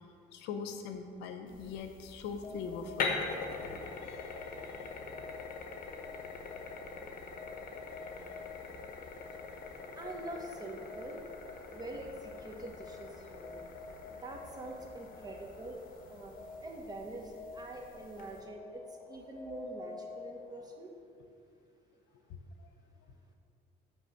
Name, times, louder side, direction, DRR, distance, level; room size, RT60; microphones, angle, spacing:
voice 1, 0.3-3.2 3.5-4.4 4.7-4.8 7.0-7.1 22.3-22.4, left 5 dB, 90° left, 7 dB, 0.7 m, -42 dB
sound 1, 1.5-18.4, left 4 dB, 55° left, 1.0 m, -44 dB
sound 2, 2.3-20.8, left 3 dB, 30° left, 1.0 m, -50 dB
voice 2, 9.9-11.2 11.7-13.7 14.1-15.8 16.1-16.3 16.6-18.8 19.1-20.9, right 1 dB, 25° right, 1 dB, 1.2 m, -44 dB
9.9 x 3.3 x 6.5 m, 2.3 s
cardioid pair, 110°, 17 cm